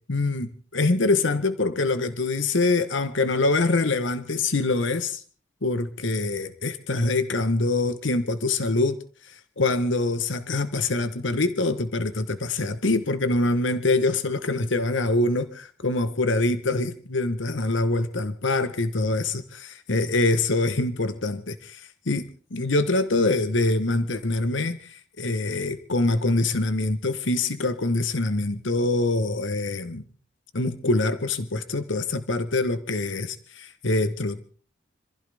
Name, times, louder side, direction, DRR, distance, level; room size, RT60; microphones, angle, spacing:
voice 1, 0.1-5.2 5.6-9.0 9.2-22.2 22.5-30.0 30.5-34.5, left 2 dB, 85° left, 12 dB, 1.1 m, -24 dB
26.5 x 15.5 x 3.5 m, 0.41 s
head